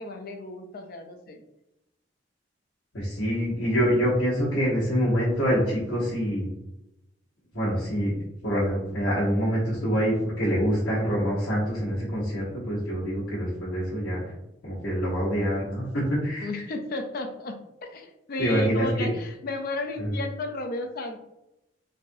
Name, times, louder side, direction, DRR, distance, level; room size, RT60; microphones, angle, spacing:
voice 1, 0.0-1.4 16.4-17.6 17.9-21.2, left 2 dB, 50° left, 5 dB, 0.4 m, -34 dB
voice 2, 2.9-6.5 7.5-8.1 8.4-14.3 14.6-16.5 18.4-19.1 20.0-20.1, equal, 70° left, -8 dB, 1.1 m, -25 dB
3.3 x 2.5 x 2.6 m, 0.90 s
head